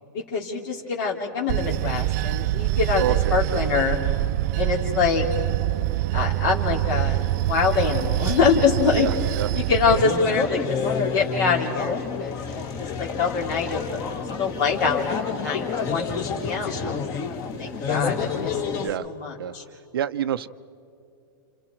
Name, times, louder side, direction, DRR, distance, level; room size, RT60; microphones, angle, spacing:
voice 1, 0.3-4.0 4.6-5.3 6.1-9.1 9.5-10.8 11.1-17.0 17.3-18.6 19.0-19.6, left 5 dB, 65° left, -3 dB, 3.1 m, -25 dB
Bell / Train, 1.5-10.0, right 15 dB, 50° right, 0.4 m, -25 dB
voice 2, 3.0-3.6 8.9-9.5 18.8-19.1 19.4-19.5 19.9-20.5, right 10 dB, 85° right, 12 dB, 0.7 m, -28 dB
sound 1, 9.8-18.9, left 5 dB, 30° left, 1.7 m, -29 dB
29.5 x 28.0 x 4.6 m, 2.6 s
supercardioid pair, 150°, 12 cm